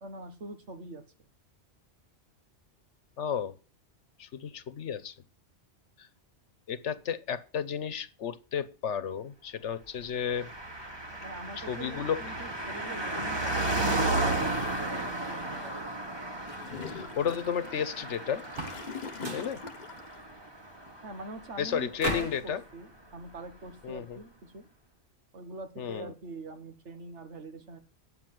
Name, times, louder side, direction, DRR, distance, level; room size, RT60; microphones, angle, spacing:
voice 1, 0.0-1.0 11.2-15.8 21.0-24.7 25.3-27.8, right 2 dB, 85° right, 8 dB, 1.8 m, -44 dB
voice 2, 3.2-3.5 4.2-5.1 6.0-6.1 6.7-10.5 11.6-12.2 16.9-18.5 19.3-19.6 21.6-22.6 23.8-24.2 25.8-26.1, left 8 dB, 85° left, 14 dB, 1.2 m, -33 dB
Car passing by, 10.2-22.1 22.3-22.4, right 2 dB, 20° right, 1.6 m, -34 dB
Gurgling / Toilet flush, 16.5-20.2, left 5 dB, 45° left, 0.8 m, -43 dB
sound 1, 18.4-18.9 19.2-19.6 22.0-22.5, right 1 dB, 50° right, 1.7 m, -35 dB
9.7 x 7.9 x 7.7 m, 0.36 s
omnidirectional pair, 1.2 m